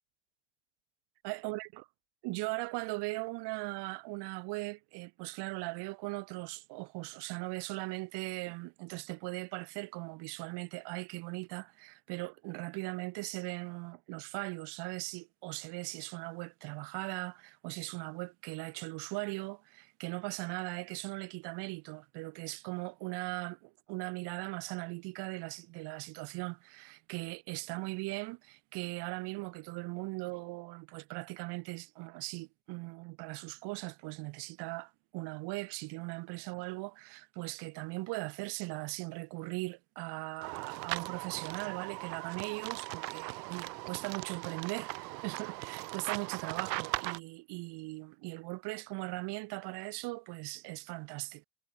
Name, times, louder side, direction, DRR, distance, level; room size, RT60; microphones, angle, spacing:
voice 1, 1.2-1.8 2.2-51.4, right 24 dB, 55° right, 1.1 m, -39 dB
sound 1, 40.4-47.2, right 23 dB, 85° right, 0.7 m, -39 dB
supercardioid pair, 120°, 49 cm